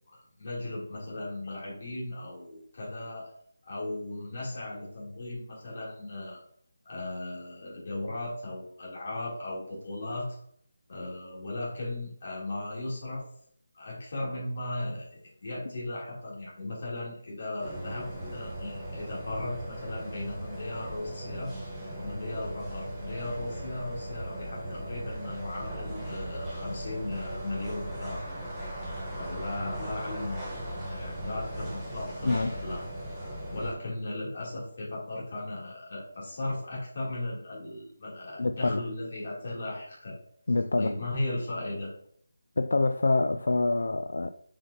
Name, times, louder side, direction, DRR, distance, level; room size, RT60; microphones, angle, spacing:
voice 1, 0.1-3.3 3.6-6.4 6.8-10.4 10.9-13.2 13.7-21.5 21.9-28.2 29.1-30.4 30.8-32.8 33.1-40.2 40.7-41.9, left 2 dB, 35° left, 3.0 m, -37 dB
sound 1, 17.6-33.7, right 1 dB, 5° right, 1.1 m, -38 dB
voice 2, 38.4-38.8 40.5-40.9 42.6-44.3, left 3 dB, 60° left, 0.4 m, -26 dB
7.5 x 5.8 x 2.8 m
figure-of-eight pair, 180°, 0 cm